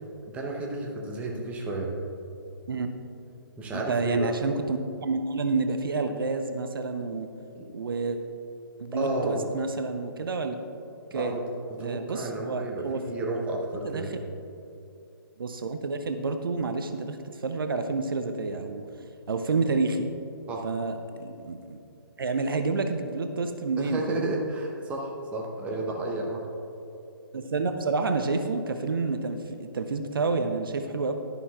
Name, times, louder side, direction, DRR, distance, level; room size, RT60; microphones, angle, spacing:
voice 1, 0.3-1.9 3.6-4.3 7.5-7.6 8.9-9.5 11.1-11.4 11.8-14.1 20.5-20.6 23.8-26.4, right 2 dB, 10° right, -1 dB, 0.9 m, -32 dB
voice 2, 3.7-7.3 7.7-8.2 8.8-10.5 11.1-11.4 11.8-13.0 13.8-14.2 15.4-18.9 19.3-20.1 20.6-21.8 22.2-24.3 27.3-31.1, right 3 dB, 65° right, 7 dB, 0.7 m, -29 dB
11.0 x 11.0 x 2.4 m, 2.7 s
figure-of-eight pair, 140°, 13 cm